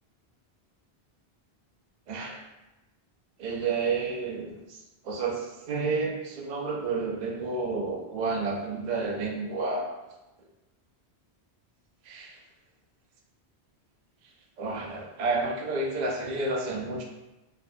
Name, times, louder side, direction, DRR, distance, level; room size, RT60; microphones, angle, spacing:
voice 1, 2.1-2.4 3.4-9.9 12.0-12.4 14.6-17.0, right 3 dB, 55° right, -1 dB, 0.5 m, -30 dB
3.2 x 2.1 x 2.5 m, 1.0 s
omnidirectional pair, 1.1 m